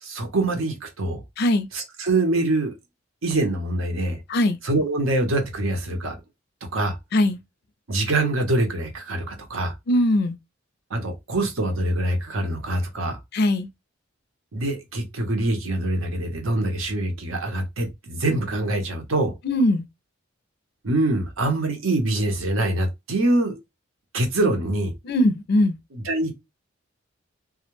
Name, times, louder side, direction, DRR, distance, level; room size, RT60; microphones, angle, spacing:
voice 1, 0.0-1.2 1.7-2.7 3.2-4.2 4.6-6.1 6.7-7.0 7.9-9.7 10.9-13.2 14.5-19.3 20.8-23.6 24.1-24.9 25.9-26.3, right 2 dB, 85° right, 0.8 m, -24 dB
voice 2, 1.4-1.7 4.3-4.6 7.1-7.4 9.9-10.4 13.3-13.7 19.4-19.8 25.0-25.8, left 1 dB, 55° left, 0.4 m, -20 dB
2.3 x 2.1 x 3.0 m
head